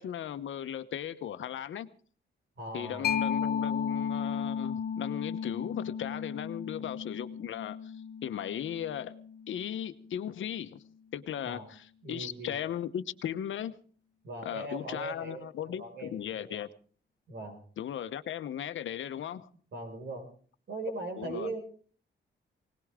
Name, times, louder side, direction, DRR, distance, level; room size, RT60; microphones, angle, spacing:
voice 1, 0.0-1.9 2.7-7.9 8.2-9.1 9.5-10.8 11.1-13.8 14.4-16.7 17.8-19.5 21.2-21.5, left 10 dB, 80° left, 1.0 m, -37 dB
voice 2, 2.6-3.1 11.4-11.7 12.0-12.6 14.2-15.4 15.8-16.6 17.3-17.6 19.7-20.3 20.7-21.6, right 2 dB, 65° right, 5.5 m, -39 dB
Mallet percussion, 3.0-10.3, left 7 dB, 50° left, 0.7 m, -35 dB
20.5 x 19.0 x 3.7 m
wide cardioid pair, 135°, 20 cm